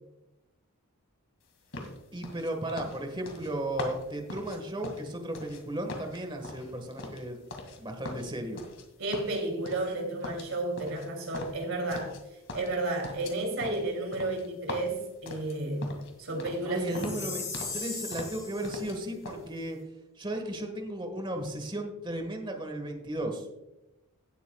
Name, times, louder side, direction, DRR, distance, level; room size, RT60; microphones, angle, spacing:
sound 1, 1.7-5.6 5.9-7.8 8.0-8.8 9.1-10.0 10.2-12.2 12.5-16.1 16.4-16.7 16.9-17.8 18.1-19.0 19.2-19.4, left 2 dB, 60° left, 2.2 m, -41 dB
voice 1, 2.1-7.4 7.8-8.6 16.6-19.8 20.2-23.5, right 1 dB, 20° right, 5 dB, 1.5 m, -35 dB
voice 2, 9.0-12.2 12.5-17.1, right 2 dB, 60° right, 2 dB, 2.9 m, -32 dB
Chime, 16.9-18.9, left 4 dB, 15° left, 3.1 m, -38 dB
17.5 x 8.3 x 2.3 m, 0.94 s
head